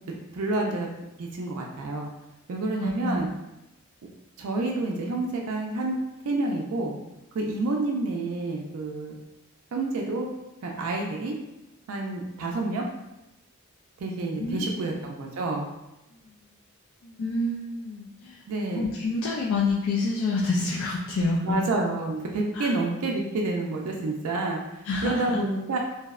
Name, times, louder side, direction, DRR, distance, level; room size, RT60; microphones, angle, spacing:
voice 1, 0.1-0.9 1.2-2.1 2.5-3.3 4.4-6.0 6.2-7.0 7.3-9.1 9.7-10.3 10.6-11.4 11.9-12.9 14.0-15.7 18.5-18.8 21.4-24.6 25.0-25.8, right 2 dB, 90° right, 0 dB, 0.4 m, -29 dB
voice 2, 2.8-3.2 14.3-15.0 16.1-16.3 17.0-18.4 18.8-21.6 22.5-22.8 24.8-25.3, left 3 dB, 75° left, -4 dB, 0.3 m, -28 dB
2.6 x 2.0 x 2.3 m, 0.95 s
head